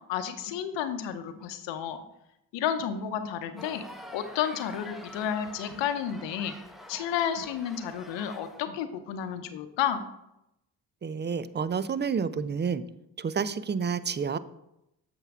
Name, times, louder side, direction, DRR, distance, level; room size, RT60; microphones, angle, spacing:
voice 1, 0.1-2.0 2.5-3.8 4.1-6.5 6.9-10.0, left 9 dB, 80° left, 9 dB, 0.8 m, -31 dB
sound 1, 3.6-8.6, left 1 dB, ahead, 0.9 m, -46 dB
voice 2, 11.0-12.8 13.2-14.4, right 6 dB, 25° right, 15 dB, 0.5 m, -29 dB
7.9 x 6.0 x 3.5 m, 0.85 s
hypercardioid pair, 45°, 43 cm